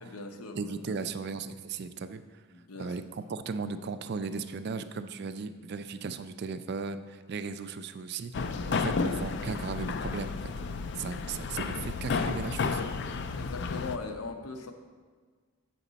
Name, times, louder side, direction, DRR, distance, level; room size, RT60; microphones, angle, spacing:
voice 1, 0.0-1.0 2.5-3.0 13.3-14.7, left 3 dB, 90° left, 5 dB, 0.8 m, -40 dB
voice 2, 0.5-2.4 2.8-12.8, right 4 dB, 50° right, 11 dB, 0.3 m, -37 dB
sound 1, 8.3-14.0, left 4 dB, 50° left, 0.3 m, -32 dB
8.3 x 5.9 x 4.0 m, 1.5 s
head